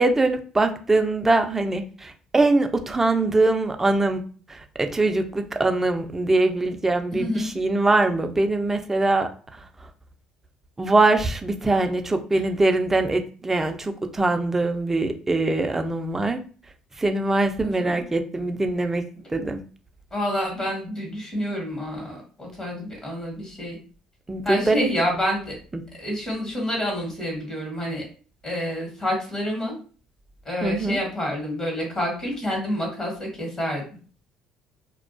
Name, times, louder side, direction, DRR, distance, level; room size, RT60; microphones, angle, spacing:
voice 1, 0.0-4.2 4.5-9.9 10.8-16.4 17.0-19.6 24.3-24.9 25.7-25.8 30.6-31.0, right 2 dB, 15° right, 6 dB, 0.4 m, -23 dB
voice 2, 7.1-7.5 17.6-18.0 20.1-23.8 24.4-25.5 26.0-28.0 28.4-29.7 30.4-33.8, equal, 40° left, -1 dB, 1.0 m, -28 dB
2.3 x 2.1 x 2.5 m, 0.39 s
supercardioid pair, 80°, 2 cm